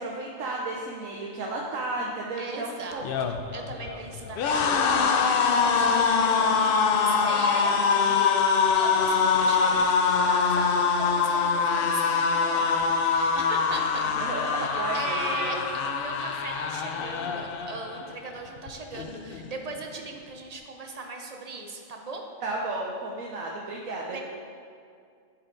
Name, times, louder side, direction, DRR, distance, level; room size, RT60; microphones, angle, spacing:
voice 1, 0.0-3.0 7.9-8.0 14.2-15.6 22.4-24.2, right 2 dB, 90° right, -2 dB, 1.1 m, -33 dB
voice 2, 2.4-14.1 14.6-15.6 15.8-22.2 24.0-24.2, right 3 dB, 50° right, 2 dB, 0.5 m, -39 dB
sound 1, 2.9-18.1 18.5-18.7 18.9-19.7, left 5 dB, 65° left, 0.6 m, -24 dB
10.5 x 4.4 x 3.8 m, 2.3 s
omnidirectional pair, 1.4 m